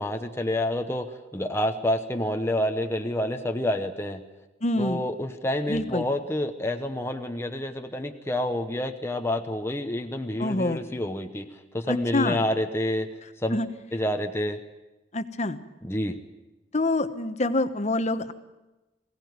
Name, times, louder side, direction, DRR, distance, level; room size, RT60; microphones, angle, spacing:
voice 1, 0.0-4.2 4.8-13.1 13.4-13.6 13.9-14.6 15.8-16.2, left 1 dB, 15° left, 5 dB, 1.0 m, -28 dB
voice 2, 4.6-5.0 5.7-6.0 10.4-10.8 11.9-12.4 13.5-13.7 15.1-15.6 16.7-18.3, left 2 dB, 40° left, 11 dB, 1.1 m, -26 dB
22.0 x 17.0 x 9.5 m, 1.1 s
head